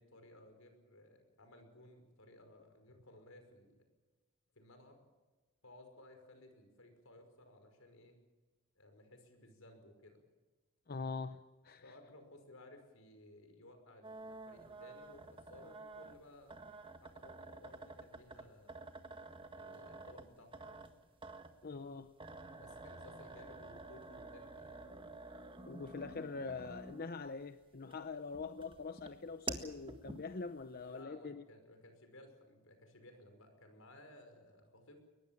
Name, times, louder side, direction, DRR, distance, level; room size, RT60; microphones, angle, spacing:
voice 1, 0.0-3.8 4.6-5.0 5.6-8.2 8.8-10.3 11.8-16.6 17.0-18.7 19.5-21.0 22.6-24.9 30.8-35.1, left 1 dB, 75° left, 6 dB, 5.4 m, -59 dB
voice 2, 10.9-12.0 21.6-22.1 25.7-31.4, left 4 dB, 45° left, 10 dB, 0.7 m, -44 dB
sound 1, 14.0-27.3 27.8-30.6, right 3 dB, 25° right, 1.6 m, -49 dB
22.5 x 20.5 x 7.2 m, 1.3 s
head